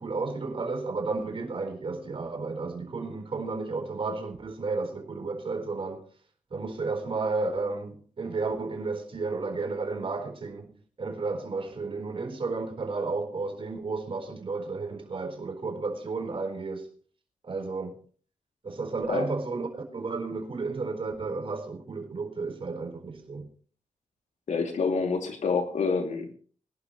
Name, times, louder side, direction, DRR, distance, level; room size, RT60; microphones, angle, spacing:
voice 1, 0.0-6.0 6.5-10.7 11.0-16.9 17.4-18.0 18.6-23.5, right 3 dB, 45° right, 4.3 m, -32 dB
voice 2, 24.5-26.3, left 4 dB, 70° left, 2.7 m, -27 dB
22.5 x 11.5 x 3.1 m
cardioid pair, 95°, 13 cm